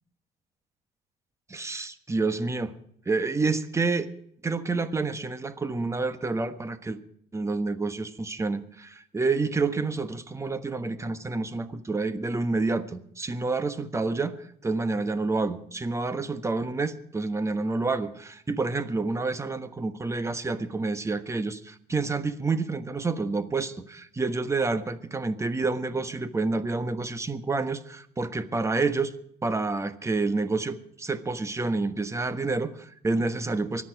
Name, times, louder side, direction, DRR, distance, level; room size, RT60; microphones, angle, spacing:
voice 1, 1.5-2.7 3.1-4.1 4.4-7.0 7.3-29.1 29.4-33.8, right 3 dB, 15° right, 11 dB, 1.2 m, -28 dB
24.0 x 8.6 x 4.7 m, 0.67 s
cardioid pair, 110°, 17 cm